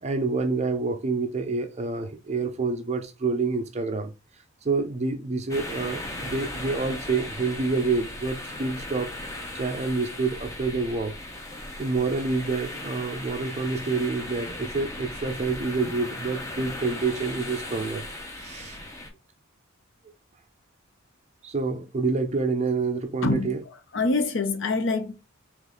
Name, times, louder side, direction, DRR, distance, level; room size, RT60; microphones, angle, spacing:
voice 1, 0.0-4.1 4.6-9.1 9.5-11.1 11.8-18.0 18.4-18.8 21.4-23.6, right 4 dB, 30° right, 0.4 m, -27 dB
sound 1, 5.5-19.1, left 1 dB, 15° left, 0.7 m, -37 dB
voice 2, 23.2-23.6 23.9-25.2, left 3 dB, 60° left, 0.6 m, -25 dB
3.4 x 3.1 x 3.8 m
head